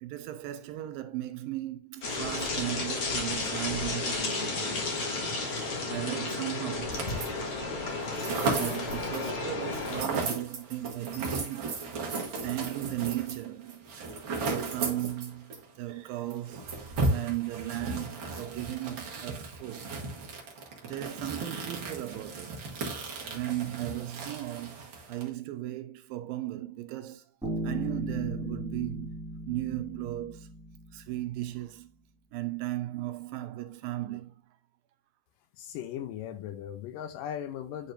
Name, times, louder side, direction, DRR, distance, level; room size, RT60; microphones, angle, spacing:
voice 1, 0.0-5.1 5.9-7.2 8.5-12.0 12.4-13.8 14.4-16.7 17.1-19.9 20.8-22.6 23.3-27.2 27.6-29.2 29.5-30.5 30.9-31.9 32.3-34.3, right 15 dB, 80° right, 2.4 m, -36 dB
sound 1, 2.0-10.0, left 3 dB, 45° left, 1.9 m, -32 dB
sound 2, 6.9-7.5 7.8-15.6 15.9-16.0 16.3-25.3, right 3 dB, 55° right, 1.4 m, -35 dB
Bass guitar, 27.4-31.2, right 1 dB, ahead, 1.4 m, -37 dB
voice 2, 35.6-37.9, left 10 dB, 80° left, 2.1 m, -38 dB
9.8 x 4.4 x 2.6 m
omnidirectional pair, 4.2 m